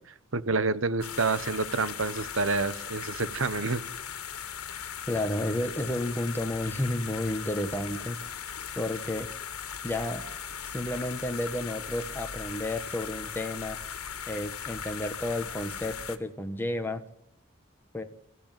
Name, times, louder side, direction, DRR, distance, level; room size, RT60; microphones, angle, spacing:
voice 1, 0.3-3.8, right 3 dB, 60° right, 16 dB, 1.0 m, -28 dB
sound 1, 1.0-16.2, left 8 dB, 80° left, 1.9 m, -38 dB
voice 2, 5.1-8.2 8.8-9.3 9.8-10.2 10.7-13.8 14.3-17.0 17.9-18.0, left 1 dB, 10° left, 6 dB, 1.3 m, -31 dB
26.5 x 14.5 x 9.2 m, 0.72 s
head